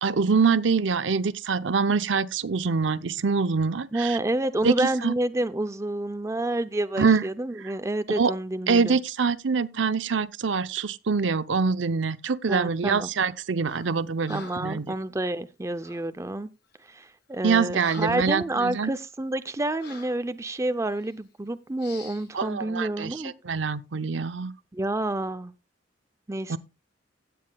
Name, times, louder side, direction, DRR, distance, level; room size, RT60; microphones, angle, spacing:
voice 1, 0.0-4.2 4.6-4.7 5.0-5.1 7.0-7.2 8.1-8.3 8.7-14.9 17.4-18.9 22.3-24.5 26.5-26.6, right 5 dB, 80° right, 0.7 m, -25 dB
voice 2, 3.9-9.0 12.5-13.1 14.3-16.5 16.9-23.3 24.7-25.5 26.3-26.6, right 1 dB, 15° right, 0.5 m, -29 dB
Breathing, 13.7-13.9 14.2-14.8 15.8-16.1 16.7-16.9 17.3-18.4 18.8-19.0 19.8-20.2 20.9-21.1 21.8-22.3, left 3 dB, 60° left, 6.0 m, -45 dB
16.0 x 9.3 x 2.3 m
head